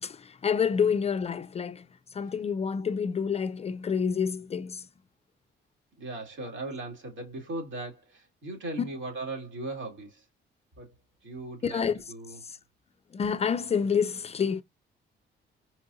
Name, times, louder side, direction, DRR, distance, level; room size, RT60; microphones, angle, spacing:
voice 1, 0.0-1.9 2.1-4.9 11.6-12.0 12.4-12.6 13.1-14.6, left 6 dB, 30° left, 0.4 m, -28 dB
voice 2, 6.0-10.3 10.8-10.9 11.2-12.4, right 2 dB, 70° right, 2.4 m, -38 dB
4.4 x 2.5 x 2.6 m
cardioid pair, 90°, 20 cm